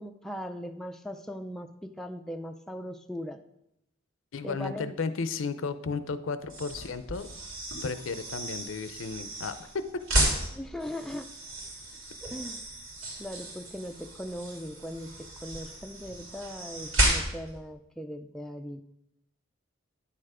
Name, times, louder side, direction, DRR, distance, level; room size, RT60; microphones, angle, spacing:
voice 1, 0.0-3.4 4.4-5.0 10.5-11.3 12.2-12.6 13.2-18.8, equal, ahead, 5 dB, 0.4 m, -39 dB
voice 2, 4.3-7.3 7.8-10.0, left 4 dB, 75° left, 12 dB, 0.5 m, -34 dB
sound 1, 6.4-17.6, right 1 dB, 90° right, 2.9 m, -33 dB
9.9 x 6.7 x 4.9 m, 0.81 s
head